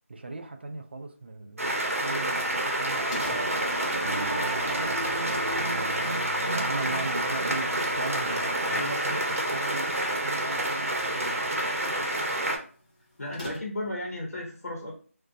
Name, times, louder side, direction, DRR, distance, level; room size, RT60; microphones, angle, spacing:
voice 1, 0.1-3.7 4.0-9.9 10.2-12.1, right 3 dB, 45° right, 0.3 m, -39 dB
sound 1, 1.6-12.6, right 1 dB, 70° right, 0.7 m, -28 dB
Singing / Musical instrument, 2.7-12.2, right 2 dB, 30° right, 0.8 m, -39 dB
sound 2, 3.1-14.0, left 1 dB, 30° left, 0.8 m, -50 dB
voice 2, 8.7-9.4 13.2-15.0, left 1 dB, 75° left, 0.8 m, -35 dB
2.4 x 2.2 x 2.5 m
figure-of-eight pair, 165°, 8 cm